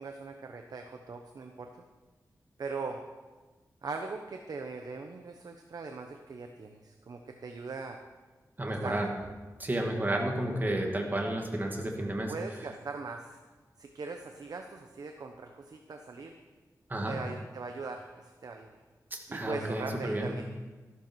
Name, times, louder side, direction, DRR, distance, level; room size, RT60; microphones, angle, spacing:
voice 1, 0.0-1.7 2.6-3.0 3.8-8.0 8.7-9.0 12.3-13.4 13.8-16.4 17.1-18.8 19.3-20.4, right 4 dB, 70° right, 4 dB, 0.9 m, -40 dB
voice 2, 8.6-9.1 9.6-12.3 16.9-17.2 19.1-20.3, right 1 dB, 30° right, 1 dB, 2.3 m, -31 dB
13.5 x 12.5 x 4.7 m, 1.3 s
wide cardioid pair, 90°, 7 cm